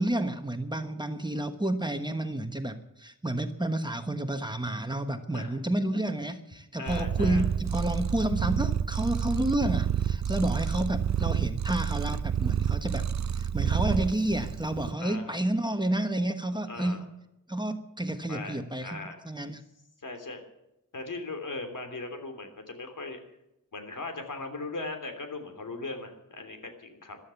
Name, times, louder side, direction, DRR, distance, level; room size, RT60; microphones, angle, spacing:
voice 1, 0.0-17.0 17.5-19.0 19.2-19.6, right 1 dB, 15° right, 7 dB, 1.2 m, -30 dB
voice 2, 5.2-5.6 6.8-7.4 15.0-15.4 16.7-17.0 18.3-19.2 20.0-20.4 20.9-23.2 23.7-27.2, left 3 dB, 70° left, 5 dB, 3.3 m, -39 dB
Purr, 6.9-14.9, right 8 dB, 55° right, 0.6 m, -29 dB
15.0 x 12.5 x 7.1 m, 0.87 s
wide cardioid pair, 110°, 33 cm